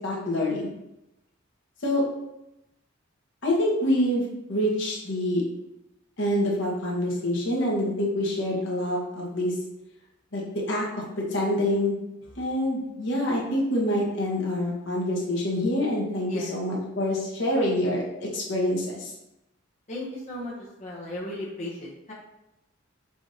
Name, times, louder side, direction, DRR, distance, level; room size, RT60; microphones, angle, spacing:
voice 1, 0.0-0.7 1.8-2.0 3.4-5.4 6.2-9.5 10.3-10.4 10.7-10.9 11.3-12.0 12.4-19.1, left 1 dB, 65° left, -3 dB, 1.0 m, -26 dB
voice 2, 19.9-20.5 20.8-22.1, left 1 dB, 35° left, -7 dB, 0.6 m, -35 dB
4.8 x 2.5 x 2.7 m, 0.91 s
head